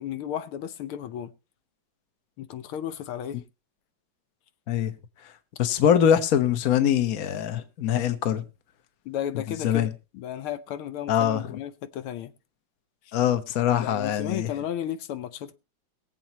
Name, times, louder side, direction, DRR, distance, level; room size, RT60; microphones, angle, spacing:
voice 1, 0.0-1.3 2.4-3.4 9.0-12.3 13.8-15.5, left 10 dB, 85° left, 1.7 m, -34 dB
voice 2, 5.6-8.4 9.6-9.9 11.1-11.6 13.1-14.5, left 9 dB, 50° left, 1.3 m, -23 dB
22.5 x 7.7 x 2.9 m
omnidirectional pair, 2.3 m